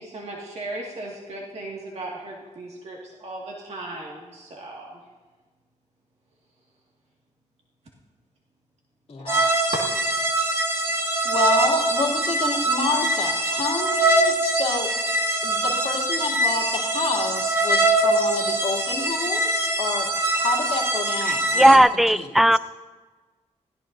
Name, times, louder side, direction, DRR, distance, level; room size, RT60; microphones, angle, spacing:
voice 1, 0.0-5.0, right 2 dB, 60° right, -3 dB, 2.0 m, -37 dB
voice 2, 9.1-9.7 11.2-14.9 15.4-21.8 22.1-22.3, left 4 dB, 55° left, 0 dB, 2.6 m, -29 dB
sound 1, 9.3-21.8, right 2 dB, 20° right, 1.5 m, -23 dB
voice 3, 21.5-22.6, right 1 dB, ahead, 15 dB, 0.4 m, -15 dB
21.0 x 16.0 x 2.7 m, 1.3 s
wide cardioid pair, 105°, 12 cm